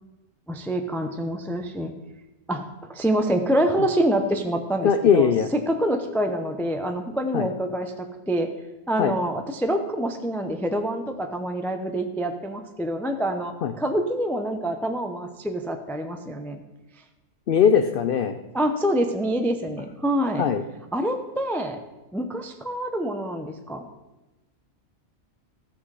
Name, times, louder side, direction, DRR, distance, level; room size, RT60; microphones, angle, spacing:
voice 1, 0.5-1.9 2.5-8.5 8.9-16.6 18.5-20.5 20.9-21.8 22.1-23.9, right 1 dB, 5° left, 5 dB, 0.4 m, -26 dB
voice 2, 4.8-5.5 7.3-7.5 9.0-9.1 13.6-13.7 17.5-18.4 20.4-20.6, left 7 dB, 60° left, 8 dB, 0.6 m, -20 dB
14.0 x 6.1 x 4.8 m, 1.1 s
omnidirectional pair, 1.3 m